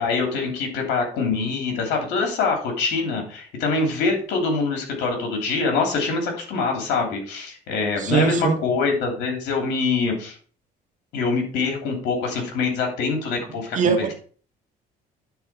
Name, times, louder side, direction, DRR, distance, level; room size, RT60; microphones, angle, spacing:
voice 1, 0.0-10.4 11.1-14.1, left 4 dB, 90° left, 3 dB, 2.9 m, -24 dB
voice 2, 8.0-8.6 13.7-14.1, right 6 dB, 45° right, 5 dB, 1.6 m, -21 dB
9.4 x 4.4 x 5.8 m, 0.43 s
cardioid pair, 110°, 17 cm